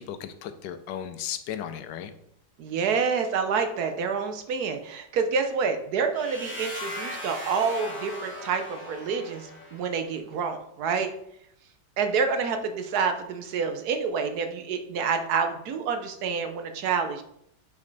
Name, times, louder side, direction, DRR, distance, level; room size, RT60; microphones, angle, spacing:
voice 1, 0.0-2.1, left 9 dB, 80° left, 10 dB, 1.2 m, -35 dB
voice 2, 2.6-11.1 12.0-17.2, right 5 dB, 65° right, 6 dB, 1.1 m, -28 dB
sound 1, 6.1-10.0, left 1 dB, 10° left, 1.0 m, -38 dB
5.3 x 5.1 x 4.0 m, 0.72 s
omnidirectional pair, 1.9 m